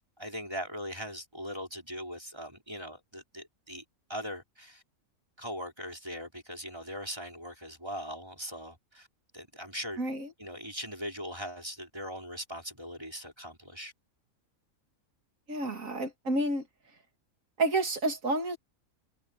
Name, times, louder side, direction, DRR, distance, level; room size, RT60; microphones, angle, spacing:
voice 1, 0.0-3.8 4.1-4.8 5.4-9.1 9.3-10.0 10.4-13.9, equal, 20° right, 5.7 m, -40 dB
voice 2, 10.0-10.3 15.5-16.7 17.6-18.6, right 2 dB, 65° right, 3.1 m, -29 dB
omnidirectional pair, 1.5 m